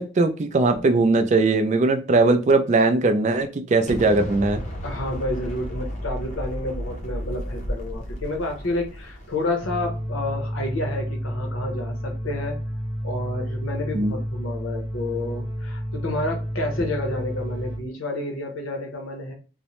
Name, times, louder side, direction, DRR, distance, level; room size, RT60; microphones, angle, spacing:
voice 1, 0.0-4.6 13.9-14.2, right 3 dB, 35° right, 7 dB, 0.3 m, -20 dB
Explosion, 3.9-9.9, equal, 35° left, 0.6 m, -33 dB
voice 2, 4.8-12.6 13.0-19.3, left 2 dB, 85° left, 2 dB, 0.8 m, -30 dB
sound 1, 9.6-17.8, equal, 10° right, 0.8 m, -30 dB
2.6 x 2.1 x 3.0 m, 0.34 s
head